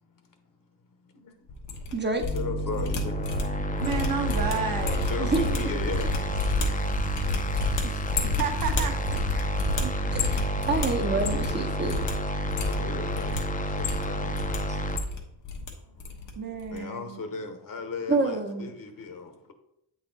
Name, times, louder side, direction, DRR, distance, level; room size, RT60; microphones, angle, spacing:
voice 1, 1.0-1.5 2.3-3.9 5.0-6.2 12.6-14.5 15.6-19.5, left 4 dB, 50° left, 1.0 m, -38 dB
sound 1, 1.5-2.4 2.6-11.6 11.8-12.1 12.4-13.4 13.7-14.6 14.8-15.7 16.0-16.3 16.6-16.8, left 3 dB, 90° left, 1.2 m, -31 dB
voice 2, 1.9-2.2 5.2-5.6 7.8-8.0 9.4-9.5 10.1-12.0 14.7-14.8 16.8-16.9 18.1-18.7, right 3 dB, 25° right, 0.7 m, -28 dB
sound 2, 2.2-15.0, right 1 dB, 20° left, 0.5 m, -30 dB
voice 3, 3.8-5.1 8.2-9.0 9.8-9.9 16.4-17.2, right 6 dB, 55° right, 1.1 m, -31 dB
8.1 x 4.1 x 3.9 m
wide cardioid pair, 120°, 42 cm